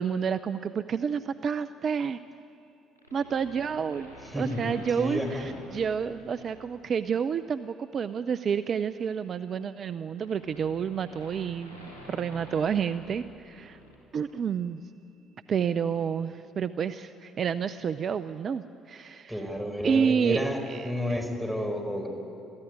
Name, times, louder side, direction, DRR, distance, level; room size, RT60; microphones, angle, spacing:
voice 1, 0.0-2.2 3.1-13.8 14.1-14.8 15.5-19.3 19.8-20.4 20.7-21.2, right 7 dB, 45° right, 12 dB, 0.5 m, -29 dB
sound 1, 3.0-6.7 7.1-7.4 8.6-13.9 14.2-14.3, equal, 90° left, 4.5 m, -49 dB
voice 2, 4.2-5.5 19.3-20.6 20.8-22.1, left 1 dB, ahead, 2 dB, 4.9 m, -31 dB
24.0 x 15.0 x 9.5 m, 2.8 s
hypercardioid pair, 50°, 0 cm